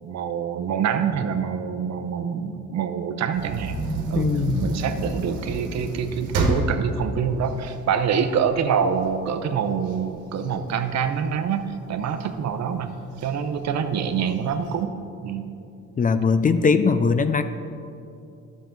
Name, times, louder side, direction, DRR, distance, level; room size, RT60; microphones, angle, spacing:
voice 1, 0.0-3.8 4.1-4.3 4.6-11.6 11.9-15.0 15.2-15.5, right 7 dB, 60° right, 9 dB, 0.7 m, -26 dB
sound 1, 3.3-8.5 9.0-9.1 9.4-11.5 12.0-12.6 13.2-13.3 13.6-13.7 14.1-14.7, right 2 dB, 90° right, 1.3 m, -29 dB
voice 2, 4.2-4.8 16.0-17.4, left 5 dB, 30° left, 11 dB, 0.4 m, -20 dB
11.5 x 7.3 x 3.8 m, 2.7 s
cardioid pair, 90°, 30 cm